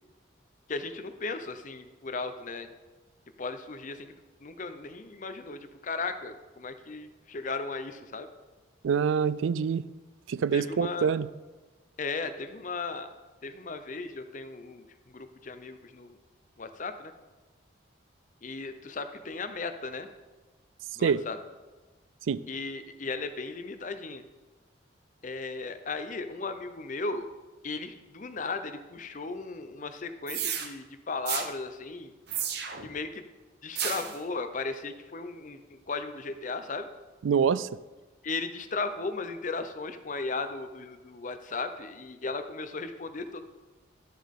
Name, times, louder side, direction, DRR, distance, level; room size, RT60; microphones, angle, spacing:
voice 1, 0.7-2.7 3.4-4.1 4.4-8.3 10.5-11.1 12.0-13.1 13.4-16.2 16.6-17.1 18.4-20.1 20.9-21.4 22.5-24.2 25.2-27.3 27.6-32.1 32.8-33.2 33.6-36.9 38.2-43.4, left 3 dB, 40° left, 9 dB, 0.6 m, -36 dB
voice 2, 8.8-9.8 10.3-11.3 21.0-21.2 22.3-22.4 37.2-37.7, right 6 dB, 75° right, 18 dB, 0.3 m, -25 dB
sound 1, 30.3-30.7 31.3-31.5 32.3-32.9 33.8-34.2, right 8 dB, 55° right, 0.9 m, -32 dB
12.0 x 7.4 x 3.6 m, 1.2 s
head